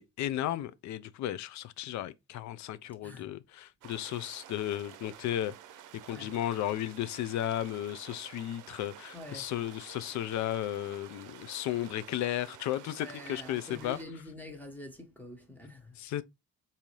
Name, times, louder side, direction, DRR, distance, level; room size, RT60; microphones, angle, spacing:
voice 1, 0.0-5.5 6.1-14.0 16.0-16.2, left 12 dB, 70° left, 0.5 m, -34 dB
sound 1, 3.8-14.0, right 11 dB, 85° right, 0.6 m, -51 dB
voice 2, 9.1-9.5 13.0-16.0, left 1 dB, 5° left, 1.1 m, -46 dB
3.8 x 2.7 x 3.0 m
cardioid pair, 90°, 30 cm